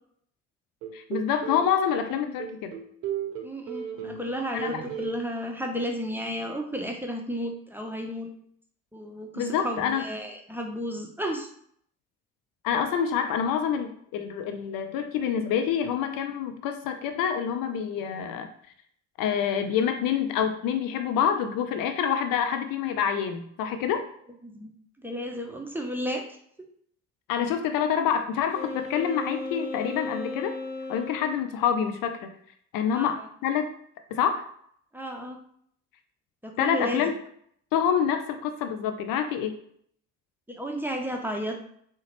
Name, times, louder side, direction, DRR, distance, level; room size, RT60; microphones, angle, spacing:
sound 1, 0.8-1.7 2.1-4.3 4.6-5.2, right 8 dB, 75° right, 0.7 m, -35 dB
voice 1, 0.9-2.7 4.5-4.8 9.4-10.0 12.6-18.5 19.2-24.1 27.3-30.5 30.9-32.3 32.7-33.7 34.1-34.5 36.6-37.1 37.7-39.6, left 8 dB, 55° left, 7 dB, 0.5 m, -27 dB
voice 2, 3.4-8.3 8.9-11.5 24.4-24.7 25.0-26.2 32.9-33.3 34.9-35.4 36.4-37.0 40.5-41.6, equal, 5° right, 2 dB, 0.6 m, -33 dB
Wind instrument woodwind instrument, 28.5-31.4, left 3 dB, 90° left, 0.8 m, -36 dB
3.7 x 2.1 x 3.0 m, 0.65 s
hypercardioid pair, 50°, 40 cm